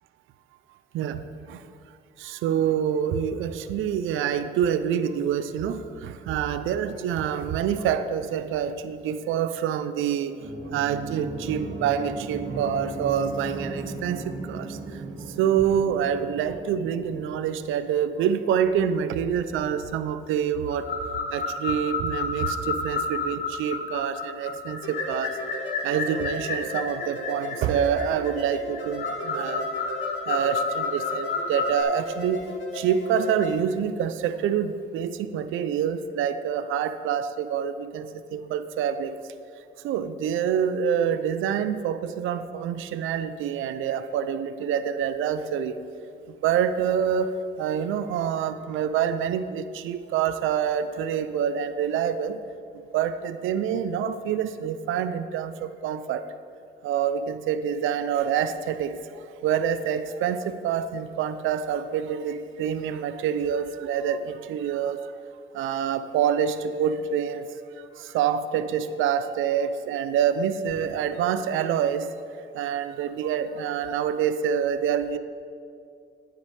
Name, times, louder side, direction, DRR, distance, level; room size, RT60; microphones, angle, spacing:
voice 1, 2.2-10.4 10.7-14.7 15.4-20.9 21.3-25.3 25.8-29.7 30.3-32.4 32.7-39.1 39.8-45.7 46.4-47.3 47.6-52.4 52.9-55.5 55.8-56.2 56.8-59.0 59.4-65.0 65.5-67.4 68.1-72.1 72.6-75.2, right 8 dB, 85° right, 11 dB, 0.5 m, -26 dB
sound 1, 10.4-17.9, right 3 dB, 65° right, 2.3 m, -36 dB
sound 2, 20.7-31.8, left 4 dB, 50° left, 1.4 m, -31 dB
sound 3, 24.8-33.5, left 1 dB, 75° left, 2.0 m, -36 dB
10.0 x 9.4 x 3.3 m, 2.4 s
cardioid pair, 90°, 20 cm